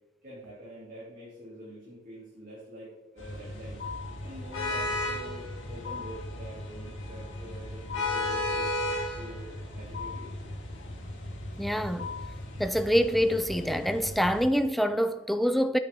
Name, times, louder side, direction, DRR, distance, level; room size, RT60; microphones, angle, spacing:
voice 1, 0.2-3.8 4.2-8.7 9.1-10.3, right 1 dB, 45° right, 3.0 m, -45 dB
sound 1, 3.2-14.5, left 1 dB, 90° left, 3.0 m, -35 dB
sound 2, 3.8-4.3 5.8-6.3 7.9-8.4 9.9-10.4 12.0-12.5, left 6 dB, 55° left, 2.4 m, -40 dB
voice 2, 11.6-12.1 12.6-15.8, equal, ahead, 0.4 m, -26 dB
9.5 x 9.0 x 3.7 m
head